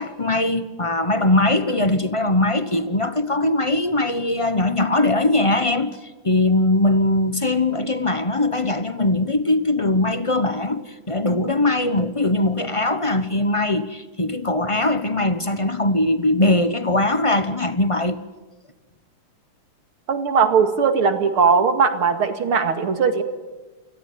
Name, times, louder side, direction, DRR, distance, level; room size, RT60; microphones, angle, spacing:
voice 1, 0.0-18.2, left 2 dB, 35° left, 0.5 m, -21 dB
voice 2, 20.1-23.2, right 5 dB, 75° right, 3.0 m, -19 dB
28.5 x 21.5 x 9.3 m
omnidirectional pair, 2.4 m